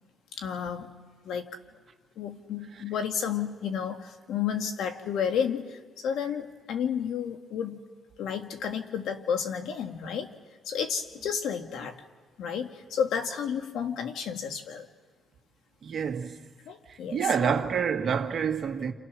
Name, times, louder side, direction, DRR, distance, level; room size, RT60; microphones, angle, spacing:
voice 1, 0.3-0.9 1.2-1.5 2.2-7.8 8.2-10.3 10.7-12.0 12.4-14.9 16.7-17.2, left 7 dB, 80° left, 1.9 m, -31 dB
voice 2, 15.8-16.4 16.9-18.9, right 7 dB, 55° right, 2.2 m, -28 dB
29.0 x 28.0 x 6.2 m
cardioid pair, 75°, 0 cm